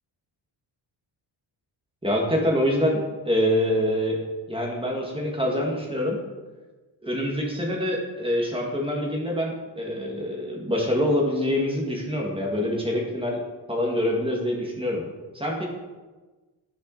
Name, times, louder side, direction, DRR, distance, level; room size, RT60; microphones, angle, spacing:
voice 1, 2.0-4.2 4.5-6.2 7.0-13.4 13.7-15.0 15.3-15.7, left 1 dB, 10° right, -2 dB, 2.1 m, -25 dB
9.9 x 9.7 x 4.2 m, 1.2 s
cardioid pair, 115°, 43 cm